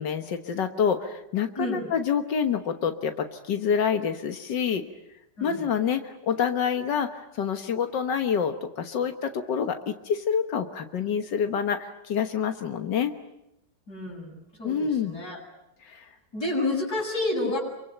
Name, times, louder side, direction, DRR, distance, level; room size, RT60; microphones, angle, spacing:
voice 1, 0.0-4.8 5.4-13.1 14.6-15.2 15.8-16.1 17.3-17.5, left 7 dB, 85° left, 7 dB, 2.0 m, -27 dB
voice 2, 1.6-1.9 5.4-5.7 13.9-15.4 16.3-17.6, left 2 dB, 65° left, -3 dB, 8.5 m, -30 dB
27.0 x 24.5 x 9.0 m, 0.83 s
omnidirectional pair, 1.9 m